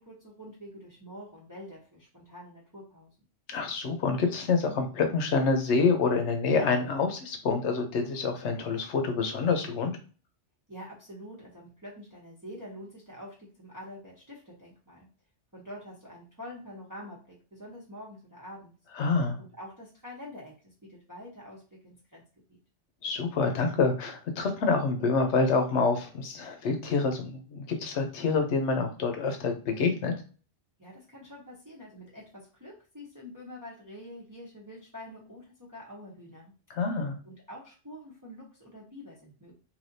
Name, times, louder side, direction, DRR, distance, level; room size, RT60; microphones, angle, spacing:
voice 1, 0.0-3.1 10.7-15.1 15.5-18.7 19.4-22.2 30.8-36.5 37.2-39.5, left 1 dB, 20° right, -5 dB, 0.7 m, -46 dB
voice 2, 3.5-9.9 19.0-19.4 23.0-30.1 36.7-37.2, left 4 dB, 80° left, 5 dB, 1.0 m, -27 dB
3.4 x 2.7 x 2.6 m, 0.37 s
omnidirectional pair, 1.2 m